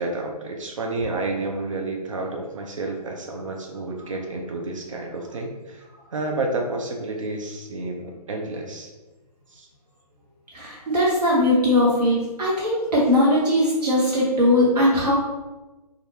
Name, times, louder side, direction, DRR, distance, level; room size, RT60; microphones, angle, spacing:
voice 1, 0.0-5.8 6.1-8.9 9.5-9.7, right 2 dB, 50° right, 1 dB, 0.6 m, -30 dB
voice 2, 10.5-15.1, left 1 dB, 75° right, -5 dB, 1.0 m, -20 dB
4.5 x 2.5 x 2.7 m, 1.1 s
figure-of-eight pair, 135°, 21 cm